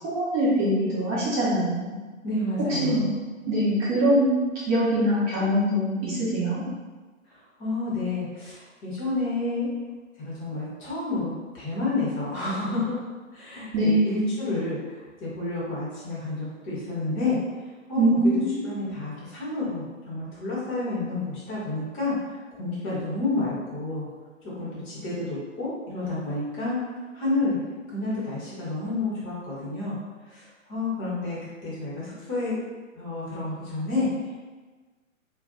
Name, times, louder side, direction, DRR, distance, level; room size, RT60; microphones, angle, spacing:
voice 1, 0.0-2.0 2.7-3.1 3.5-6.6 13.7-14.3 18.0-18.7, right 1 dB, 25° right, -9 dB, 1.0 m, -23 dB
voice 2, 2.2-3.1 7.6-9.7 10.2-13.0 13.3-17.4 17.9-18.0 18.6-22.1 22.6-24.1 24.6-26.8 27.1-27.6 27.9-30.0 30.3-32.6 33.0-34.1, left 2 dB, 20° left, -7 dB, 0.9 m, -30 dB
2.4 x 2.2 x 3.7 m, 1.3 s
figure-of-eight pair, 130°, 40 cm